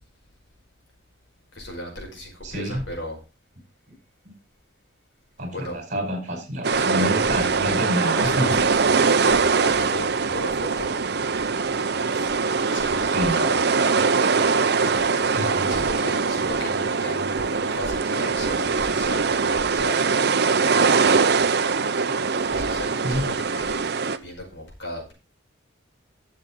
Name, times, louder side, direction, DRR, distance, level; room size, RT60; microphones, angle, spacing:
voice 1, 1.5-3.2 5.5-5.8 6.7-7.2 8.0-10.9 12.1-12.4 12.7-13.6 14.8-15.2 15.7-20.0 22.5-23.8 24.2-25.1, left 1 dB, 60° left, 0 dB, 5.3 m, -35 dB
voice 2, 2.4-2.8 5.4-8.6 13.0-13.4 15.3-15.9 23.0-23.3, equal, 35° right, 4 dB, 4.9 m, -27 dB
sound 1, 6.6-24.2, right 4 dB, 55° right, 0.7 m, -22 dB
12.5 x 7.4 x 3.9 m, 0.30 s
head